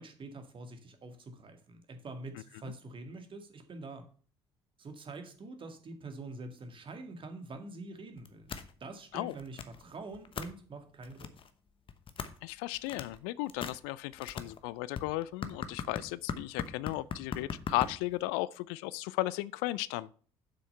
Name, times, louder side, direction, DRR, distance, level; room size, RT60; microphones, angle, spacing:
voice 1, 0.0-4.1 4.8-8.5 8.8-11.3, right 3 dB, 40° right, 2.0 m, -45 dB
sound 1, 8.2-8.7 9.1-9.8 10.1-10.5 11.0-11.5 11.9-12.4 12.7-13.2 13.5-18.3, left 6 dB, 40° left, 1.0 m, -39 dB
voice 2, 12.4-20.2, left 18 dB, 65° left, 0.4 m, -35 dB
7.6 x 6.2 x 5.6 m
figure-of-eight pair, 55°, 14 cm